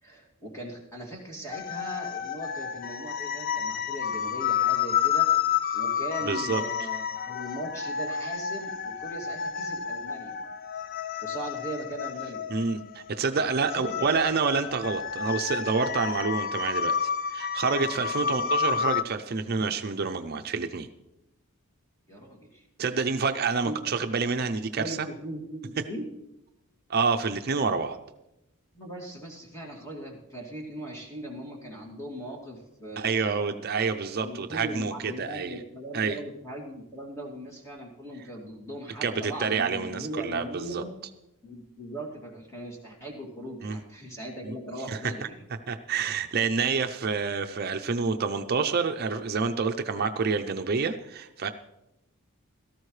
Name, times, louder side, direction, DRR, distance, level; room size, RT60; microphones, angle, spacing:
voice 1, 0.0-5.3 5.7-10.4 11.2-12.5 13.5-14.1 18.2-18.4 22.1-22.7 23.6-23.7 24.8-26.1 28.7-33.5 34.2-41.0 41.4-45.4, right 1 dB, 15° left, -1 dB, 2.5 m, -39 dB
sound 1, 1.5-19.0, left 8 dB, 40° left, 0.5 m, -30 dB
voice 2, 6.3-6.6 12.5-20.9 22.8-25.1 26.9-28.0 33.0-35.6 35.9-36.2 39.0-40.8 43.6-43.8 44.4-44.5 44.9-45.0 45.7-51.5, right 5 dB, 45° right, 6 dB, 0.5 m, -28 dB
17.0 x 13.5 x 3.2 m, 0.89 s
head